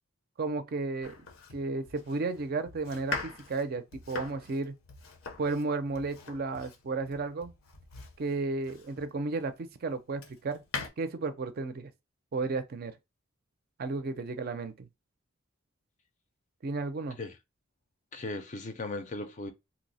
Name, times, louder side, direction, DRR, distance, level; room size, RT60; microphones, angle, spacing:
voice 1, 0.4-1.2 1.5-4.8 5.4-7.5 8.2-10.6 11.0-11.9 12.3-12.9 13.8-14.9 16.6-17.2, right 3 dB, 45° right, 0.4 m, -33 dB
Domestic sounds home sounds, 1.0-9.2 9.7-10.9, left 4 dB, 80° left, 0.8 m, -42 dB
voice 2, 18.1-19.5, left 2 dB, 35° left, 0.5 m, -37 dB
2.9 x 2.0 x 4.0 m
head